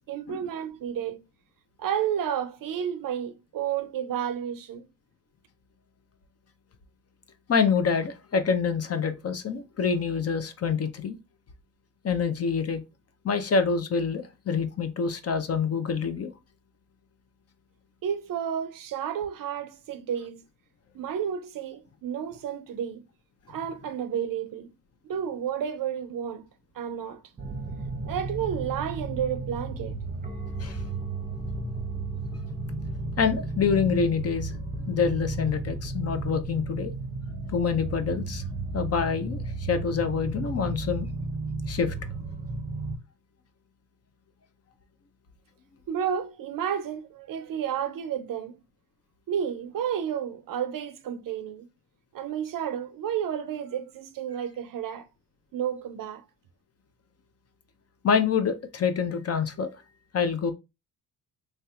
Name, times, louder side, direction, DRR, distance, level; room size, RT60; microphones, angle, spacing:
voice 1, 0.1-1.2 1.8-4.9 18.0-20.4 20.9-23.0 23.5-24.7 25.0-26.5 26.8-27.2 28.0-30.0 45.9-48.6 49.3-51.7 52.1-55.1 55.5-56.2, right 9 dB, 55° right, 0.6 m, -31 dB
voice 2, 7.5-11.2 12.0-12.8 13.2-16.3 30.6-30.8 33.2-34.5 34.9-36.9 37.5-38.4 38.7-41.1 41.7-41.9 58.0-59.7 60.1-60.5, left 6 dB, 35° left, 0.6 m, -26 dB
sound 1, 27.4-43.0, right 3 dB, 20° right, 0.8 m, -33 dB
3.2 x 2.7 x 2.4 m
supercardioid pair, 65°, 42 cm